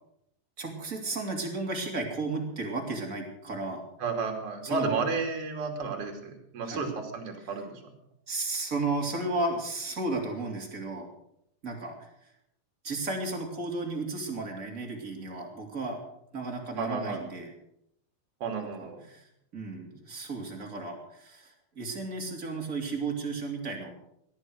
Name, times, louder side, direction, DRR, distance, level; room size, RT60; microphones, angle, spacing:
voice 1, 0.6-3.9 4.6-4.9 6.6-6.8 8.3-11.1 11.6-12.1 12.8-16.0 16.3-17.5 18.6-19.2 19.5-23.9, right 3 dB, 25° right, 1 dB, 3.2 m, -34 dB
voice 2, 4.0-7.8 16.8-17.2 18.4-19.0, right 4 dB, 40° right, 3 dB, 3.6 m, -32 dB
17.5 x 12.0 x 6.5 m, 0.76 s
omnidirectional pair, 4.1 m